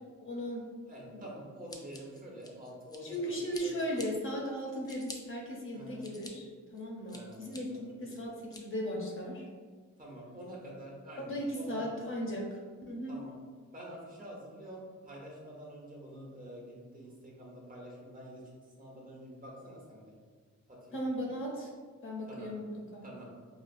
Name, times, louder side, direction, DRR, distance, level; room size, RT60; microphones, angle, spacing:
voice 1, 0.2-0.7 1.1-1.2 3.0-9.5 11.2-13.1 20.9-21.7 22.0-22.7 22.9-23.1, equal, 45° left, -1 dB, 0.7 m, -37 dB
voice 2, 0.9-4.0 5.7-6.1 7.0-8.0 10.0-11.9 13.1-13.3 13.7-18.4 18.8-20.1 20.7-21.0 22.3-22.5 23.0-23.3, equal, 30° right, -3 dB, 0.9 m, -47 dB
Scissors, 1.7-3.2 3.5-4.1 4.6-5.2 5.7-6.3 6.8-7.6 8.1-8.6, left 2 dB, 15° left, 0.4 m, -48 dB
4.9 x 2.4 x 2.5 m, 1.5 s
wide cardioid pair, 110°, 30 cm